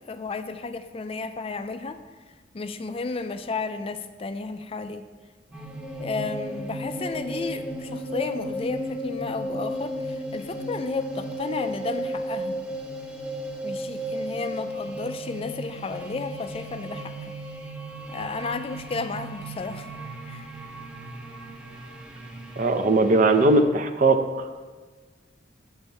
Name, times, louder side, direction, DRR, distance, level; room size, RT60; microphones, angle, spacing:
voice 1, 0.0-2.0 2.5-5.1 6.0-12.6 13.6-17.3 18.1-19.9 20.3-20.5, left 4 dB, 30° left, 9 dB, 0.3 m, -33 dB
sound 1, 5.5-23.6, right 1 dB, 5° right, 0.7 m, -35 dB
voice 2, 22.6-24.5, right 2 dB, 45° right, 7 dB, 0.6 m, -20 dB
8.0 x 6.9 x 4.3 m, 1.4 s
head